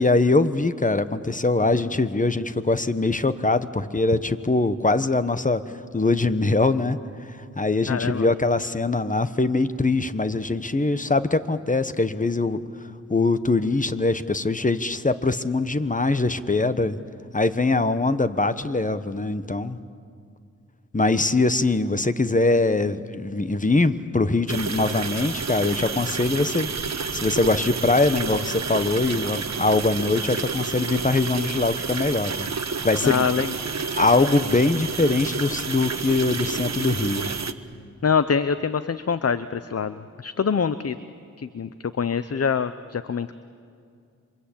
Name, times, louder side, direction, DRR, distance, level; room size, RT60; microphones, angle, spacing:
voice 1, 0.0-5.6 5.9-7.0 7.6-12.6 13.1-17.0 17.3-19.8 20.9-26.7 27.1-32.5 32.8-33.2 34.0-37.3, left 3 dB, 25° left, 12 dB, 1.1 m, -22 dB
voice 2, 7.9-8.3 33.0-33.5 38.0-41.0 41.4-41.7 42.0-43.3, left 6 dB, 50° left, 13 dB, 0.7 m, -24 dB
sound 1, 24.5-37.5, right 5 dB, 60° right, 1.1 m, -30 dB
27.5 x 24.5 x 8.6 m, 2.3 s
wide cardioid pair, 65°, 31 cm